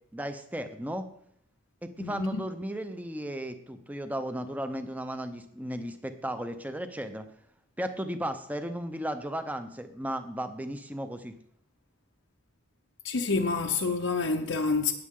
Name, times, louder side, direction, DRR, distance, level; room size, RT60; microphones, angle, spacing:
voice 1, 0.1-1.1 1.8-7.3 7.8-11.3, equal, 10° right, 0.7 m, -35 dB
voice 2, 2.0-2.4 13.0-14.9, left 4 dB, 75° left, 0.8 m, -28 dB
18.5 x 7.4 x 3.8 m
head